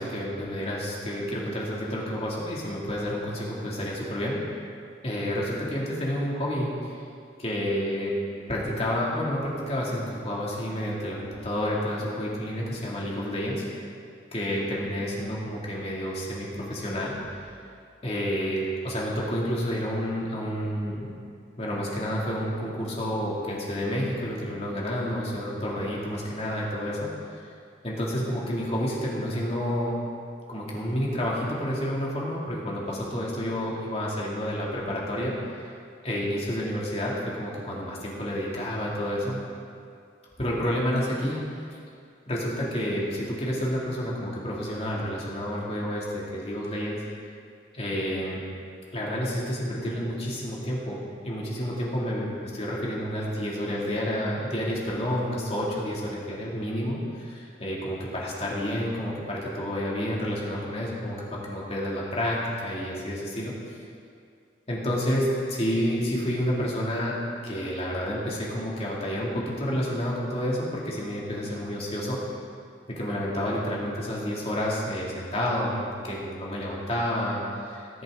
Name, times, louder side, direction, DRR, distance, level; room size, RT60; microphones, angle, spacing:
voice 1, 0.0-4.4 5.0-6.7 7.4-8.1 8.5-13.6 14.3-17.2 18.0-21.1 21.6-27.4 27.8-29.9 30.5-35.7 36.0-39.4 40.4-41.4 42.3-47.0 47.7-48.4 48.9-63.5 64.7-67.2 67.4-72.2 72.9-78.0, equal, 35° left, -5 dB, 2.4 m, -29 dB
19.0 x 7.9 x 3.7 m, 2.4 s
head